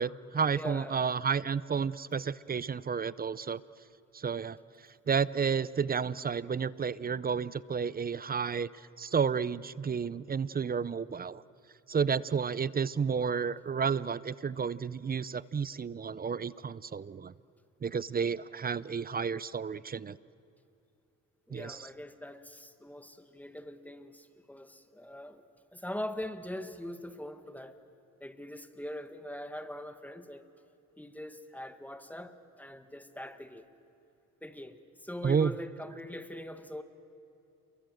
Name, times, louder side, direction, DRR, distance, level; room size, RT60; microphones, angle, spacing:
voice 1, 0.0-3.6 4.1-4.6 5.1-11.4 11.9-17.3 17.8-20.2 21.5-21.9 35.2-35.5, right 6 dB, 30° right, 19 dB, 0.6 m, -31 dB
voice 2, 0.5-1.0 21.5-25.4 25.7-27.8 28.2-30.4 31.0-33.7 34.4-36.8, left 1 dB, 5° left, 9 dB, 1.8 m, -42 dB
29.0 x 23.0 x 7.9 m, 2.7 s
cardioid pair, 90°, 30 cm